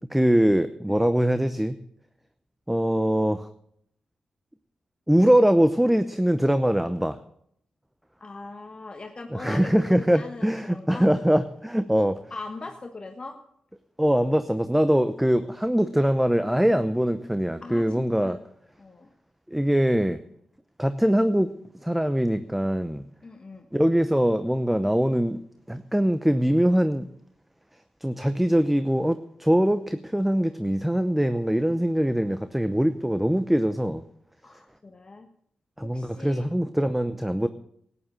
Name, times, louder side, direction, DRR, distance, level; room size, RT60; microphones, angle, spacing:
voice 1, 0.1-1.8 2.7-3.5 5.1-7.2 9.3-12.2 14.0-18.4 19.5-20.2 20.8-21.5 21.8-23.0 23.7-25.4 25.7-27.1 28.0-34.0 35.8-37.5, equal, 5° right, 11 dB, 0.8 m, -22 dB
voice 2, 8.2-11.1 12.3-13.4 17.6-18.4 18.8-19.1 23.2-23.7 34.4-35.3 35.8-36.5, left 3 dB, 40° left, 4 dB, 1.3 m, -40 dB
12.5 x 10.0 x 7.6 m, 0.70 s
supercardioid pair, 45°, 2 cm